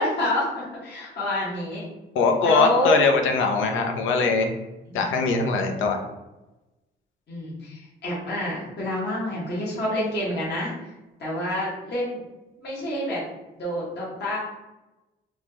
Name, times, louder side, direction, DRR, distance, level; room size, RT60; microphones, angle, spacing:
voice 1, 0.0-1.8 2.4-3.0 4.9-5.1 7.3-10.7 11.2-12.2 12.6-13.2 13.6-14.4, left 1 dB, 60° left, -6 dB, 1.1 m, -27 dB
voice 2, 2.1-4.5 4.9-6.0, left 4 dB, 80° left, 4 dB, 0.6 m, -21 dB
3.1 x 2.2 x 2.8 m, 1.0 s
cardioid pair, 90°, 20 cm